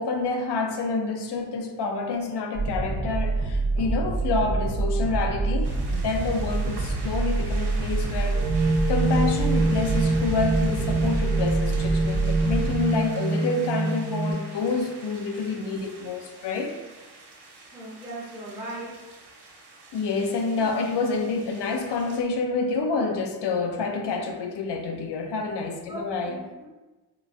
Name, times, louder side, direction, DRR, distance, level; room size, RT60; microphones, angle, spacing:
voice 1, 0.0-8.5 8.9-16.7 19.9-26.4, left 4 dB, 70° left, 4 dB, 0.5 m, -28 dB
sound 1, 2.5-12.8, right 3 dB, 90° right, 0.7 m, -26 dB
sound 2, 5.6-22.2, right 2 dB, 65° right, 0.9 m, -45 dB
sound 3, 8.3-14.3, right 2 dB, 90° left, 1.3 m, -25 dB
voice 2, 17.7-19.0 20.6-20.7 25.9-26.7, right 1 dB, 5° right, -5 dB, 0.5 m, -38 dB
4.6 x 2.3 x 2.5 m, 1.2 s
wide cardioid pair, 175°, 43 cm